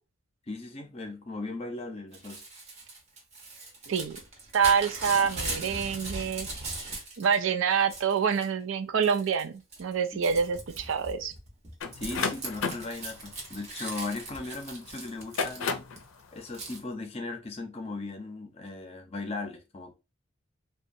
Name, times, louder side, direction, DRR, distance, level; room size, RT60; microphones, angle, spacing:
voice 1, 0.5-2.4 10.2-10.4 11.9-15.8 16.3-19.9, left 3 dB, 30° left, 0.5 m, -38 dB
Crumpling crinkling / Tearing, 2.1-7.4 7.7-8.5 9.0-9.4 9.7-16.0 16.5-16.8, right 2 dB, 35° right, 0.8 m, -39 dB
voice 2, 3.9-4.2 4.5-6.5 7.2-11.3, right 6 dB, 75° right, 0.4 m, -26 dB
sound 1, 11.8-14.5 15.1-16.0, left 5 dB, 85° left, 0.4 m, -33 dB
2.7 x 2.2 x 2.5 m
head